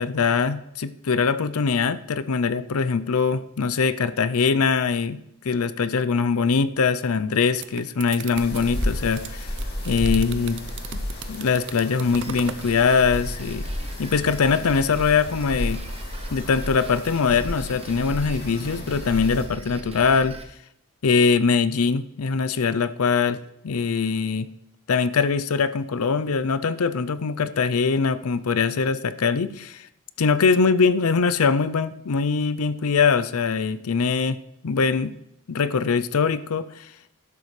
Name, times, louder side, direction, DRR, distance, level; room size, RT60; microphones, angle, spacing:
voice 1, 0.0-5.2 5.4-9.5 9.9-10.6 10.9-11.0 11.3-13.7 14.0-15.8 16.3-20.4 21.0-24.5 24.9-29.9 30.2-34.4 34.6-35.1 35.5-36.9, left 5 dB, 80° left, 14 dB, 0.5 m, -22 dB
sound 1, 7.3-12.7, right 8 dB, 55° right, 0.5 m, -39 dB
sound 2, 8.3-19.5, left 1 dB, 45° left, 2.5 m, -32 dB
Drum kit, 12.1-20.4, right 1 dB, 25° right, 0.9 m, -40 dB
12.0 x 11.5 x 3.3 m, 0.80 s
head